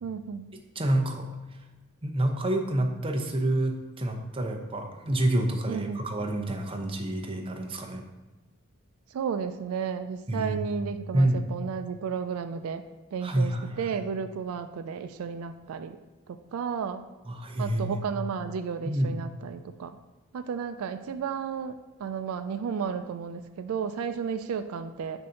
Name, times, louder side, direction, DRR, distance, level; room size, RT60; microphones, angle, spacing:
voice 1, 0.0-0.5 5.7-6.0 9.1-12.8 13.1-13.5 13.8-16.0 16.3-17.1 17.6-20.0 20.3-21.7 22.0-25.3, right 6 dB, 80° right, 9 dB, 0.3 m, -33 dB
voice 2, 0.8-1.3 2.0-8.0 10.3-10.6 11.1-11.4 13.2-14.0 17.3-18.0 18.8-19.1, right 1 dB, 25° right, 3 dB, 0.6 m, -28 dB
6.5 x 2.6 x 5.6 m, 1.2 s
head